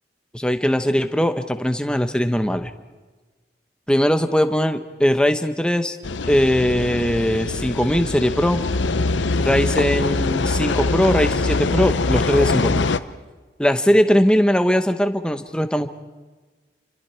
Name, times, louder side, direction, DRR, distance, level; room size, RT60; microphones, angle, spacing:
voice 1, 0.3-2.7 3.9-6.0 6.3-8.6 9.4-12.8 13.6-15.9, equal, 5° left, 8 dB, 0.9 m, -20 dB
sound 1, 6.0-13.0, left 3 dB, 90° left, 0.8 m, -23 dB
29.0 x 25.0 x 4.5 m, 1.3 s
head